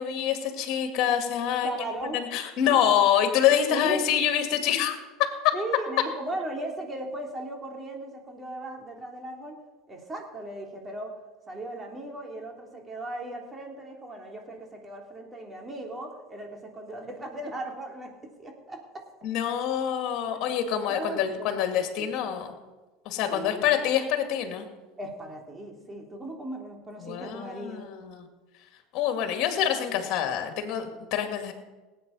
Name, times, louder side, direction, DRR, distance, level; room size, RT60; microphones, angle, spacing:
voice 1, 0.0-5.0 5.4-5.5 19.2-22.5 23.1-24.7 27.0-28.2 28.9-31.5, left 9 dB, 55° left, 5 dB, 2.3 m, -26 dB
voice 2, 1.6-2.2 3.7-4.1 5.5-9.6 9.9-11.1 11.5-19.0 20.9-22.1 23.3-23.8 25.0-27.9, right 1 dB, 20° right, 1 dB, 3.4 m, -37 dB
18.5 x 8.7 x 5.5 m, 1.2 s
hypercardioid pair, 80°, 0 cm